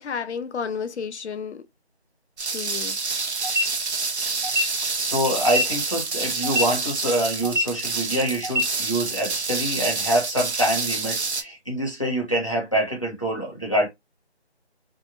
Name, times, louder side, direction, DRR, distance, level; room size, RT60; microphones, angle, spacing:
voice 1, 0.0-1.6 2.5-3.0, left 6 dB, 85° left, 0.5 m, -31 dB
sound 1, 2.4-11.4, right 4 dB, 80° right, 0.7 m, -28 dB
sound 2, 3.4-3.6 4.4-4.6 5.4-5.6 6.4-6.6 7.4-7.6 8.4-8.6, left 1 dB, 45° right, 0.5 m, -23 dB
voice 2, 4.5-13.9, right 1 dB, 30° left, 0.7 m, -25 dB
2.7 x 2.0 x 2.6 m
figure-of-eight pair, 180°, 33 cm